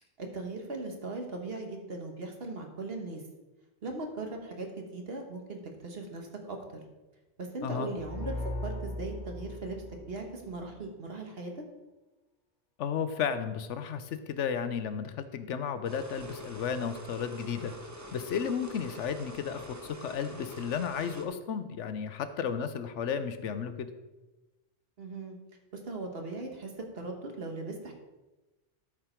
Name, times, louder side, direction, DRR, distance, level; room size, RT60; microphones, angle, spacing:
voice 1, 0.2-3.2 3.8-6.6 7.4-11.5 25.0-25.4 25.8-27.9, right 2 dB, 55° right, 2 dB, 1.5 m, -39 dB
sound 1, 7.9-10.7, left 1 dB, 40° left, 1.7 m, -38 dB
voice 2, 12.8-17.7 18.1-23.9, left 7 dB, 90° left, 11 dB, 1.0 m, -33 dB
sound 2, 15.8-21.3, equal, 20° right, 0.7 m, -45 dB
12.5 x 5.0 x 4.5 m, 1.1 s
omnidirectional pair, 1.2 m